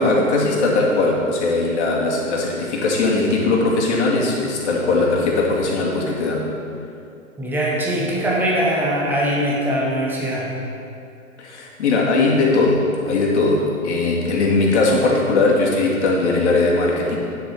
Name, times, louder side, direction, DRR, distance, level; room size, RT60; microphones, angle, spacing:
voice 1, 0.0-6.4 11.4-17.2, left 3 dB, 50° left, -3 dB, 2.4 m, -19 dB
voice 2, 7.4-10.6, equal, 5° right, -4 dB, 0.9 m, -21 dB
9.8 x 7.1 x 5.1 m, 2.5 s
hypercardioid pair, 140°, 44 cm